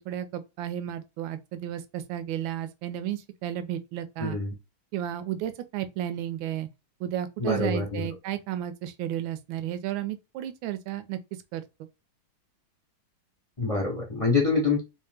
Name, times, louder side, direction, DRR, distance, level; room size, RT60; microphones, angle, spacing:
voice 1, 0.1-4.4 4.9-6.7 7.0-11.2 11.5-11.6, right 11 dB, 75° right, 1.3 m, -33 dB
voice 2, 4.2-4.5 7.4-8.1 13.6-14.8, left 4 dB, 50° left, 0.4 m, -26 dB
3.3 x 2.8 x 3.4 m
omnidirectional pair, 2.3 m